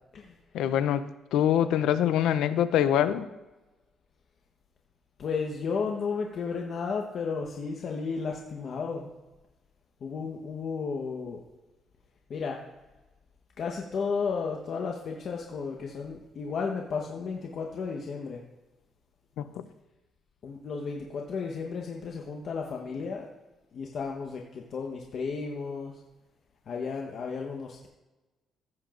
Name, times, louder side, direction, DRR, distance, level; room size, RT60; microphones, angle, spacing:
voice 1, 0.5-3.3 19.4-19.5, left 10 dB, 90° left, 13 dB, 0.5 m, -24 dB
voice 2, 5.2-9.1 10.0-11.4 12.3-12.6 13.6-18.4 20.4-23.3 23.7-25.9 26.7-27.9, left 5 dB, 60° left, 0 dB, 1.0 m, -33 dB
15.5 x 7.5 x 2.5 m, 1.1 s
cardioid pair, 90°, 0 cm